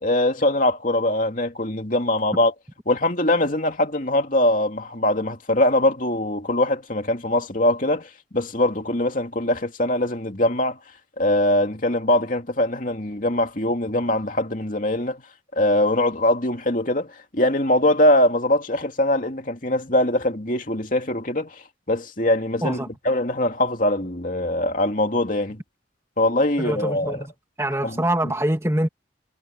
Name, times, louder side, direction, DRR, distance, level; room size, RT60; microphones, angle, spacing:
voice 1, 0.0-2.5 2.9-10.8 11.2-15.2 15.5-25.6 26.2-27.2 27.8-28.0, left 1 dB, 45° left, 2.7 m, -22 dB
voice 2, 26.6-27.3 27.6-28.9, right 1 dB, 15° right, 2.3 m, -24 dB
head